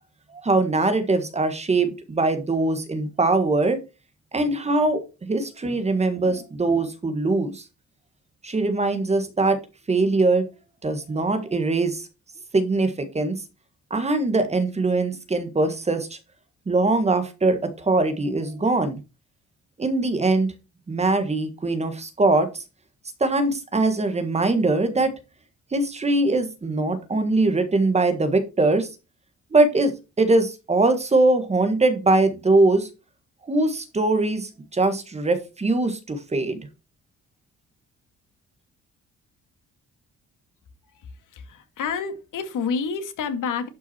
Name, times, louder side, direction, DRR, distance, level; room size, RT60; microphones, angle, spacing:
voice 1, 0.3-3.8 4.3-7.6 8.4-9.6 9.9-10.5 10.8-12.1 12.5-13.4 13.9-16.2 16.7-19.0 19.8-20.5 20.9-22.6 23.2-25.1 25.7-28.9 29.5-32.9 33.5-36.6, right 2 dB, 20° right, 1.6 m, -22 dB
voice 2, 41.3-43.7, left 5 dB, 90° left, 2.2 m, -29 dB
11.5 x 6.0 x 4.5 m
wide cardioid pair, 175°, 30 cm